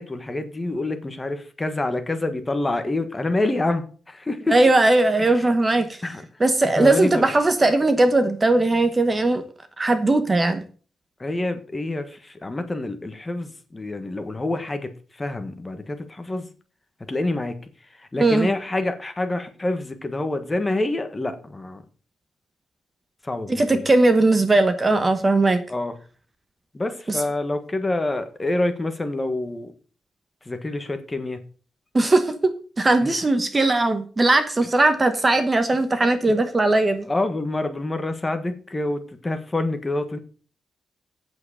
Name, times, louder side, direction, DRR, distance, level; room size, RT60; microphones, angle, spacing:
voice 1, 0.0-4.6 5.3-5.5 6.0-6.2 6.8-7.3 11.2-14.9 15.2-16.5 17.1-17.6 18.0-21.8 23.2-23.8 25.7-26.0 26.7-29.7 30.4-31.4 33.0-33.1 37.1-40.2, left 2 dB, 15° left, 8 dB, 1.4 m, -27 dB
voice 2, 4.5-6.0 6.4-9.4 9.8-10.6 18.2-18.5 23.5-25.6 27.1-27.2 31.9-32.5 32.8-37.1, right 2 dB, 20° right, 10 dB, 1.0 m, -19 dB
8.8 x 7.8 x 5.6 m, 0.39 s
wide cardioid pair, 145°, 0 cm